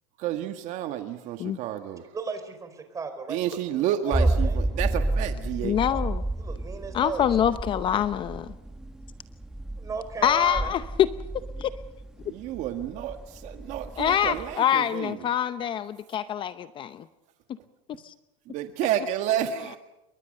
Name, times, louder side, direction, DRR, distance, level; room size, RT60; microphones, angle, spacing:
voice 1, 0.2-2.0 3.3-5.8 12.2-15.1 18.5-19.8, right 11 dB, 45° right, 7 dB, 1.8 m, -30 dB
voice 2, 2.1-4.6 6.4-7.5 9.8-10.7, right 5 dB, 20° right, 8 dB, 5.0 m, -35 dB
sound 1, 4.1-14.5, right 2 dB, 5° right, 1.2 m, -31 dB
voice 3, 5.6-6.2 6.9-8.5 10.2-11.1 11.6-11.7 14.0-17.0 18.0-18.1, left 10 dB, 30° left, 13 dB, 0.8 m, -25 dB
29.0 x 23.0 x 6.7 m, 0.93 s
supercardioid pair, 130°, 16 cm